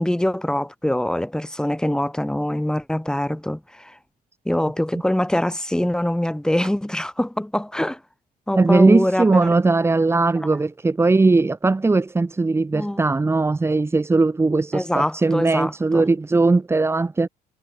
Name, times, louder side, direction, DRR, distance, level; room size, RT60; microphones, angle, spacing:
voice 1, 0.0-4.0 4.4-8.0 8.5-9.5 12.7-13.0 14.7-16.0, left 1 dB, 5° left, 4.2 m, -24 dB
voice 2, 8.5-17.3, right 3 dB, 15° right, 1.1 m, -19 dB
cardioid pair, 110°, 17 cm